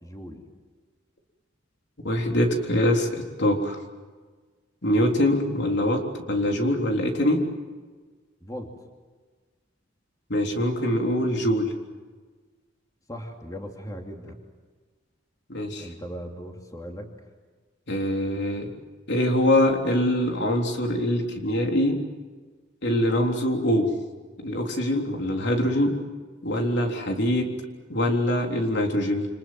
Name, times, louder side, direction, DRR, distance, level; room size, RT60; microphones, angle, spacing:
voice 1, 0.0-0.5 8.4-8.7 13.1-14.4 15.7-17.1, equal, 20° left, 3 dB, 2.7 m, -38 dB
voice 2, 2.0-3.8 4.8-7.4 10.3-11.7 15.5-15.9 17.9-18.7 19.1-22.0 22.8-23.9 24.4-25.9 26.4-27.5 27.9-29.3, left 1 dB, 65° left, 2 dB, 3.7 m, -23 dB
29.0 x 27.0 x 7.7 m, 1.4 s
head